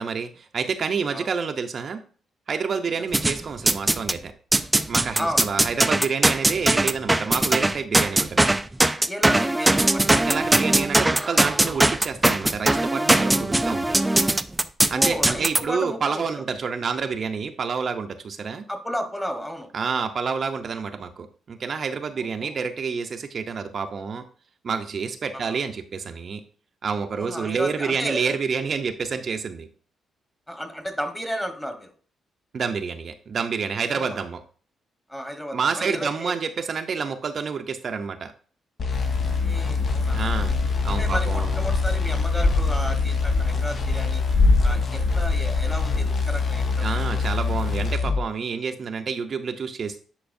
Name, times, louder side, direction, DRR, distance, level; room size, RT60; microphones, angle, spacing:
voice 1, 0.0-2.0 2.5-4.3 4.9-8.5 10.2-14.1 14.9-18.7 19.7-24.2 24.6-26.4 26.8-29.7 32.5-34.4 35.5-38.3 40.1-40.5 40.8-41.7 46.8-50.0, right 5 dB, 50° right, 5 dB, 0.6 m, -28 dB
sound 1, 3.1-4.2 4.5-15.6, right 1 dB, 10° right, 0.4 m, -20 dB
voice 2, 5.2-5.5 9.1-10.3 14.9-16.4 18.7-19.7 22.2-22.6 25.3-25.5 27.2-28.4 30.5-31.9 33.9-34.2 35.1-36.4 39.4-40.4 40.9-44.2 44.6-47.2, equal, 5° left, 6 dB, 1.3 m, -33 dB
sound 2, 38.8-48.2, left 5 dB, 50° left, 0.9 m, -25 dB
sound 3, 38.9-47.9, left 2 dB, 65° left, 3.3 m, -26 dB
10.0 x 4.6 x 2.6 m, 0.41 s
cardioid pair, 90°, 0 cm